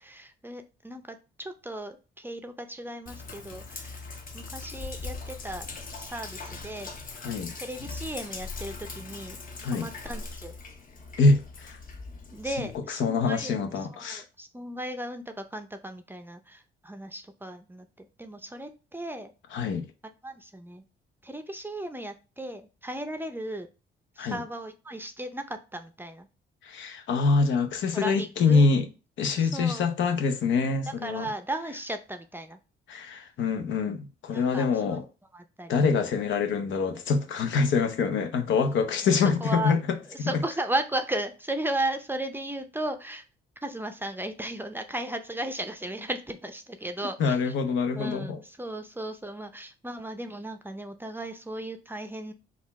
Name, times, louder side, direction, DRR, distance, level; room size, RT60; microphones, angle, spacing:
voice 1, 0.0-4.0 4.3-5.7 6.0-6.9 7.6-9.4 9.7-10.5 12.3-19.3 20.0-20.8 21.2-23.7 24.2-26.3 27.9-28.7 29.4-29.9 31.0-32.6 34.3-35.0 35.3-35.8 39.4-39.8 40.1-43.2 43.6-47.5 47.9-52.3, right 1 dB, 10° right, 0.5 m, -35 dB
Sink (filling or washing), 3.1-12.8, left 3 dB, 45° left, 0.8 m, -40 dB
voice 2, 7.2-7.5 9.6-9.9 11.2-11.8 12.6-14.2 19.5-19.9 24.2-24.4 26.6-28.8 29.2-31.3 32.9-35.0 35.7-40.3 47.2-48.4, left 4 dB, 75° left, 0.7 m, -25 dB
4.0 x 2.4 x 4.1 m
cardioid pair, 90°, 20 cm